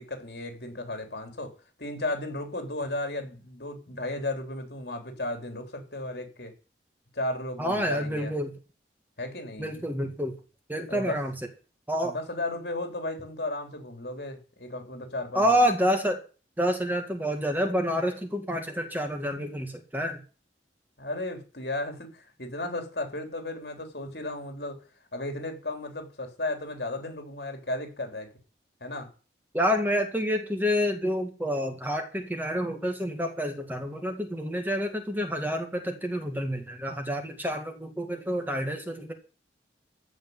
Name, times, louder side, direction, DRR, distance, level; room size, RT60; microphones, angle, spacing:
voice 1, 0.0-1.5 1.8-6.5 7.1-8.3 9.2-9.7 10.9-11.2 12.0-15.6 21.0-24.8 25.1-28.3 28.8-29.1, left 2 dB, 65° left, 3.5 m, -34 dB
voice 2, 7.6-8.5 9.6-10.3 10.7-11.3 11.9-12.2 15.3-16.2 16.6-20.2 29.5-39.1, equal, 10° right, 1.9 m, -28 dB
15.5 x 5.3 x 9.5 m
head